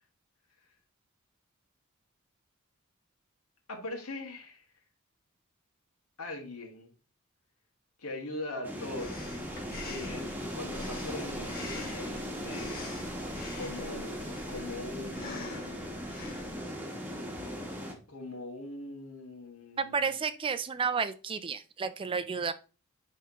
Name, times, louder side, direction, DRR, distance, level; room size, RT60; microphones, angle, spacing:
voice 1, 3.7-4.7 6.2-6.9 8.0-9.2 9.8-12.9 13.5-15.7 18.1-20.2, left 2 dB, 80° left, 1.9 m, -41 dB
sound 1, 8.6-17.9, equal, 10° right, 1.1 m, -38 dB
Breathing, 9.0-16.6, left 3 dB, 45° left, 1.9 m, -45 dB
voice 2, 19.8-22.5, right 5 dB, 25° right, 0.3 m, -31 dB
10.0 x 3.5 x 2.9 m
head